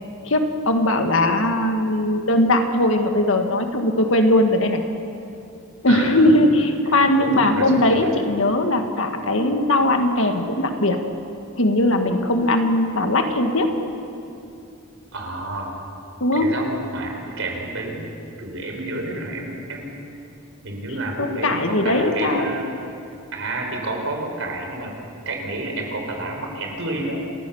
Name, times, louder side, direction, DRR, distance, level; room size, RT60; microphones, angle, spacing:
voice 1, 0.2-4.8 5.8-11.0 11.6-13.7 16.2-16.5 21.2-22.5, left 1 dB, 65° left, 5 dB, 1.8 m, -19 dB
voice 2, 5.9-6.5 6.9-8.1 15.1-15.7 16.3-18.0 18.4-20.0 20.6-22.8 23.3-24.9 25.2-27.2, right 2 dB, 65° right, 1 dB, 4.3 m, -30 dB
28.5 x 14.5 x 7.2 m, 2.6 s
head